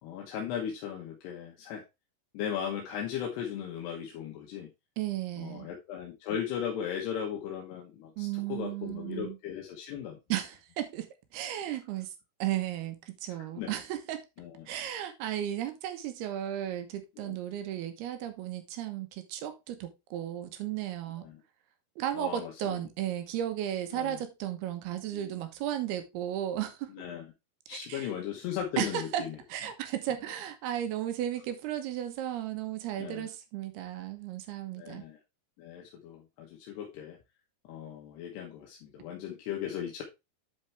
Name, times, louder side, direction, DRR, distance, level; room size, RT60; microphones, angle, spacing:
voice 1, 0.0-1.8 2.3-4.7 5.4-10.2 13.6-13.7 14.4-14.7 17.2-17.3 21.2-21.4 22.1-22.8 23.9-24.2 25.1-25.4 26.9-27.3 27.7-29.4 33.0-33.3 34.8-35.2 35.6-37.2 37.7-40.0, left 9 dB, 85° left, 3.3 m, -37 dB
voice 2, 5.0-5.7 8.2-9.4 10.3-12.1 12.4-14.2 14.7-21.3 22.0-27.0 27.7-28.1 28.8-29.2 29.5-35.0, right 11 dB, 75° right, 3.1 m, -34 dB
10.5 x 4.5 x 3.4 m
omnidirectional pair, 4.7 m